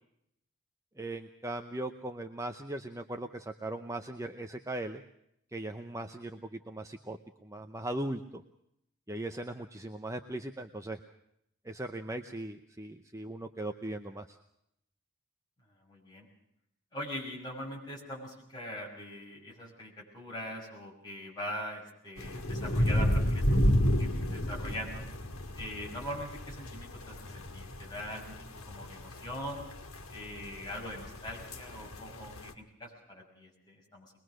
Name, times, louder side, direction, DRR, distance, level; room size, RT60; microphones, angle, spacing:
voice 1, 1.0-5.0 5.5-8.4 9.1-11.0 11.6-14.4, right 1 dB, 15° right, 6 dB, 0.7 m, -39 dB
voice 2, 15.8-16.3 16.9-23.7 24.0-25.1 25.5-28.3 28.7-29.6 30.1-34.1, equal, 20° left, -2 dB, 6.6 m, -42 dB
sound 1, 22.2-32.5, equal, 85° left, 2.2 m, -31 dB
22.5 x 21.5 x 6.4 m, 0.77 s
head